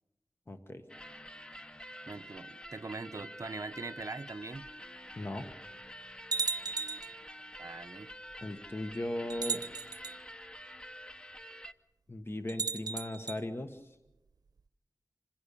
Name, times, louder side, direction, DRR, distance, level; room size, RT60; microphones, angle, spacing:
voice 1, 0.5-0.8 5.1-5.5 8.4-9.6 12.1-14.0, left 1 dB, 35° left, 1.4 m, -38 dB
sound 1, 0.9-11.7, equal, 15° left, 0.9 m, -48 dB
voice 2, 2.1-4.7 7.6-8.1, right 3 dB, 50° right, 0.8 m, -42 dB
sound 2, 4.7-4.8 5.5-5.6 6.3-7.2 8.3-8.4 9.3-10.2 12.5-13.4, right 4 dB, 85° right, 0.7 m, -35 dB
26.0 x 16.0 x 8.4 m
wide cardioid pair, 80°, 7 cm